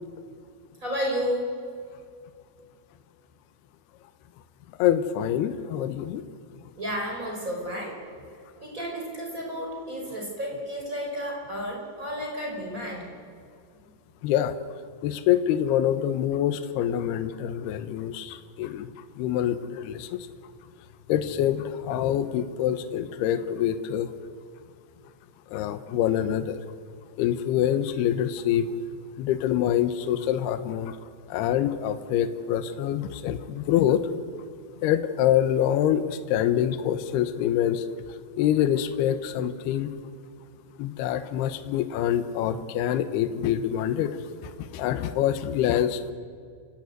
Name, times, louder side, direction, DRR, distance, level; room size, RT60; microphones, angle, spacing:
voice 1, 0.8-1.4 6.8-7.9 8.6-13.1, equal, 15° right, -1 dB, 5.0 m, -32 dB
voice 2, 4.8-6.2 14.2-14.6 15.0-18.9 19.2-20.1 21.1-24.1 25.5-26.6 27.2-28.7 29.2-31.0 31.3-34.1 34.8-37.8 38.4-39.9 40.8-44.2 44.7-46.1, left 10 dB, 70° left, 11 dB, 2.7 m, -25 dB
29.5 x 17.0 x 9.4 m, 2.2 s
omnidirectional pair, 5.5 m